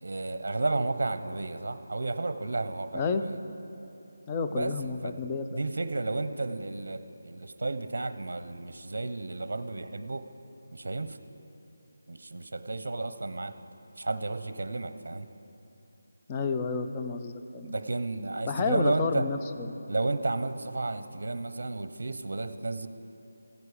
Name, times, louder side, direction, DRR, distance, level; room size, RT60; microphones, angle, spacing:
voice 1, 0.0-3.4 4.5-5.2 5.5-10.3 10.7-11.2 12.1-13.5 14.0-15.3 17.6-19.3 19.9-22.9, right 2 dB, 65° right, 11 dB, 0.7 m, -32 dB
voice 2, 4.3-5.6 16.3-17.8 18.5-19.9, left 4 dB, 15° left, 6 dB, 0.4 m, -31 dB
15.5 x 9.5 x 5.0 m, 2.9 s
figure-of-eight pair, 175°, 0 cm